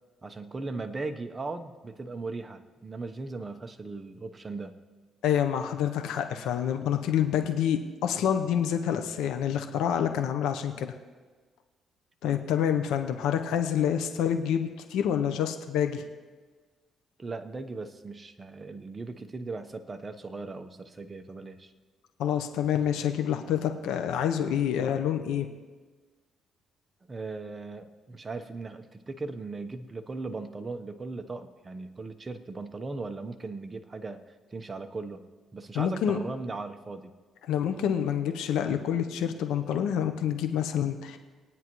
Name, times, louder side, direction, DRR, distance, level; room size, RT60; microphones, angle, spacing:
voice 1, 0.2-4.8 17.2-21.7 27.1-35.2 35.5-37.2, right 3 dB, 25° right, 6 dB, 0.9 m, -38 dB
voice 2, 5.2-10.9 12.2-16.0 22.2-25.5 35.7-36.2 37.4-41.2, left 9 dB, 90° left, 6 dB, 0.8 m, -27 dB
21.5 x 9.5 x 3.1 m, 1.4 s
cardioid pair, 90°, 0 cm